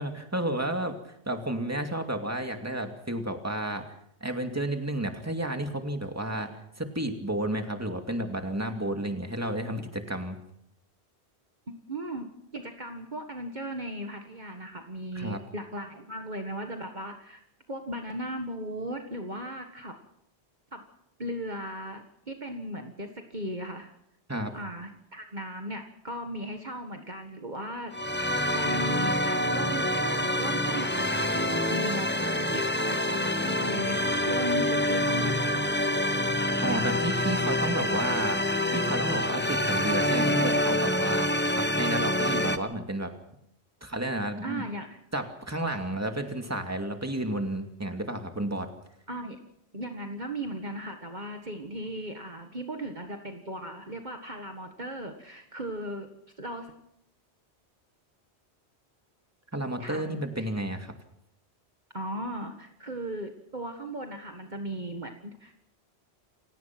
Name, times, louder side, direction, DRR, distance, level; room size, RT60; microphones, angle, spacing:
voice 1, 0.0-3.8 4.2-6.5 6.8-10.4 15.1-15.4 24.3-24.5 36.6-38.4 38.7-43.1 43.8-44.6 45.1-48.7 59.5-60.9, right 1 dB, 15° right, 5 dB, 2.5 m, -31 dB
voice 2, 11.7-17.4 17.7-20.0 20.7-20.8 21.2-23.9 24.5-35.7 36.6-36.9 44.4-45.0 49.1-49.4 49.7-56.1 56.4-56.7 59.8-60.2 61.9-65.6, right 1 dB, 45° right, 4 dB, 1.9 m, -37 dB
sound 1, 27.9-42.6, left 1 dB, 10° left, 1.1 m, -26 dB
29.0 x 18.0 x 6.1 m, 0.75 s
omnidirectional pair, 1.1 m